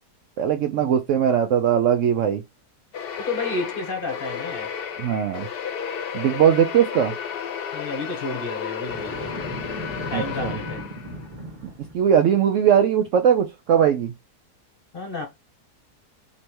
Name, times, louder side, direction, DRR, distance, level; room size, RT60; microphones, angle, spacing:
voice 1, 0.4-2.4 5.0-5.5 6.1-7.1 10.1-10.6 11.9-14.1, right 8 dB, 70° right, 0.8 m, -20 dB
sound 1, 2.9-11.2, left 7 dB, 70° left, 0.5 m, -33 dB
voice 2, 3.2-4.7 7.7-9.4 10.1-10.8 14.9-15.3, left 3 dB, 40° left, 1.2 m, -31 dB
Boom, 8.9-12.1, equal, 30° right, 1.6 m, -36 dB
3.3 x 3.0 x 4.4 m
omnidirectional pair, 1.7 m